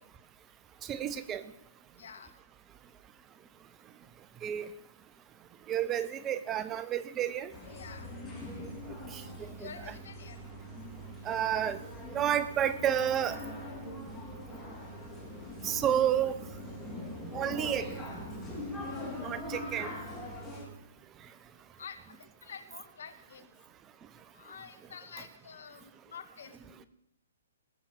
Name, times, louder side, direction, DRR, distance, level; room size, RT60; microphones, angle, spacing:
voice 1, 0.9-1.4 4.4-4.7 5.7-7.5 9.1-9.2 11.3-11.8 12.1-13.4 15.6-16.4 17.3-17.9 19.2-19.9, right 10 dB, 20° right, 14 dB, 0.7 m, -30 dB
voice 2, 2.0-2.3 7.7-8.1 9.6-10.5 19.2-19.4 21.8-23.5 24.3-26.9, left 6 dB, 60° left, 8 dB, 1.8 m, -48 dB
sound 1, 7.5-20.6, left 1 dB, 5° left, 3.9 m, -42 dB
18.5 x 7.3 x 7.1 m, 0.82 s
figure-of-eight pair, 120°, 0 cm